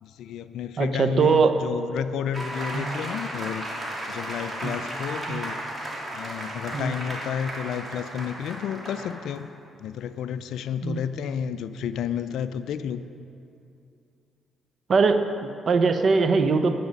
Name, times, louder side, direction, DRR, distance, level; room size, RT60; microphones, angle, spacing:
voice 1, 0.0-3.6 4.1-5.6 6.1-9.5 9.8-13.0, left 8 dB, 80° left, 11 dB, 0.3 m, -31 dB
voice 2, 0.8-1.5 2.7-3.0 4.6-4.7 5.3-5.4 6.7-6.9 10.8-11.0 14.9-16.8, right 4 dB, 50° right, 8 dB, 0.7 m, -21 dB
sound 1, 2.3-9.4, right 1 dB, 25° right, 2.7 m, -34 dB
9.6 x 9.1 x 5.3 m, 2.6 s
cardioid pair, 75°, 0 cm